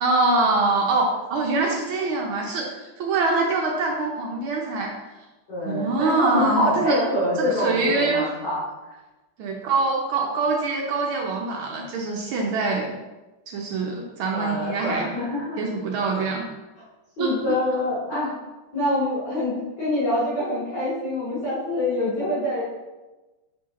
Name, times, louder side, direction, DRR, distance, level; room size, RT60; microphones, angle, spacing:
voice 1, 0.0-4.9 5.6-7.0 7.4-8.4 9.4-12.9 13.5-15.1 15.6-16.4 17.2-17.6 18.1-18.2, right 3 dB, 75° right, 0 dB, 1.5 m, -24 dB
voice 2, 5.5-8.6 14.3-15.6 17.2-18.3 18.7-22.6, left 1 dB, 50° left, -10 dB, 2.7 m, -25 dB
6.9 x 4.4 x 3.7 m, 1.1 s
omnidirectional pair, 2.4 m